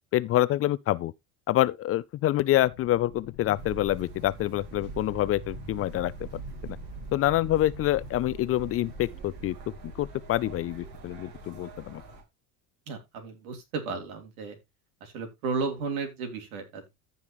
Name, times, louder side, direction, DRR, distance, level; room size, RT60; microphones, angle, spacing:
voice 1, 0.1-1.1 1.5-6.4 7.1-9.6 10.0-12.0, left 14 dB, 35° left, 0.4 m, -26 dB
sound 1, 2.6-12.2, left 12 dB, 75° left, 1.1 m, -48 dB
sound 2, 3.5-12.2, right 7 dB, 60° right, 3.5 m, -43 dB
voice 2, 12.9-14.6 15.0-16.9, right 4 dB, 85° right, 3.2 m, -34 dB
14.5 x 5.4 x 3.0 m
supercardioid pair, 110°, 41 cm